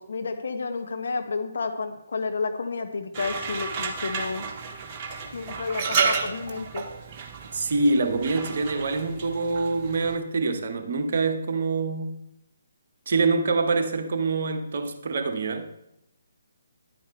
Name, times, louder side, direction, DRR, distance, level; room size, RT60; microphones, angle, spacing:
voice 1, 0.0-4.5 5.3-6.9, left 4 dB, 60° left, 5 dB, 1.2 m, -31 dB
sound 1, 3.1-10.1, right 5 dB, 30° right, 1.1 m, -31 dB
voice 2, 7.5-12.2 13.1-15.7, right 3 dB, 50° right, 5 dB, 1.1 m, -25 dB
10.0 x 8.6 x 3.2 m, 0.88 s
figure-of-eight pair, 140°, 0 cm